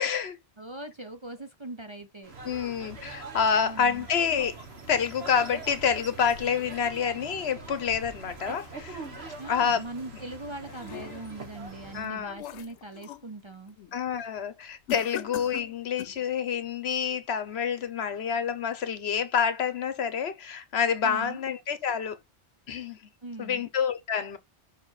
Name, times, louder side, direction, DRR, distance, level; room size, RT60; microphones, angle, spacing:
voice 1, 0.0-0.4 2.4-4.6 4.9-9.0 9.4-9.8 11.9-12.3 13.9-22.2 22.7-23.0 23.4-24.4, left 7 dB, 65° left, 1.1 m, -28 dB
voice 2, 0.6-2.3 3.6-4.1 9.4-13.8 21.0-21.4 23.2-23.7, right 2 dB, 30° right, 0.7 m, -41 dB
sound 1, 2.2-12.1, right 3 dB, 65° right, 1.9 m, -43 dB
sound 2, 10.3-11.5 11.9-13.3 13.7-14.0 14.9-16.2, left 12 dB, 90° left, 0.9 m, -42 dB
5.8 x 4.4 x 4.8 m
omnidirectional pair, 1.2 m